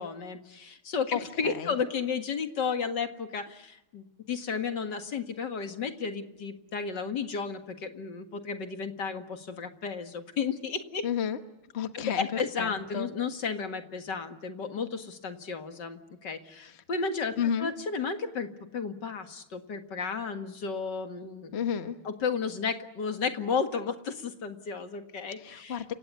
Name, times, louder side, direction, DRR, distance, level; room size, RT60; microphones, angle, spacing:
voice 1, 0.0-11.0 11.9-21.5 22.0-25.8, left 5 dB, 55° left, 7 dB, 2.4 m, -33 dB
voice 2, 1.1-1.7 11.0-11.4 11.7-13.1 16.6-16.8 17.4-17.7 21.5-22.0 25.4-25.9, left 8 dB, 35° left, 9 dB, 1.2 m, -32 dB
29.5 x 17.0 x 9.8 m, 0.91 s
omnidirectional pair, 2.4 m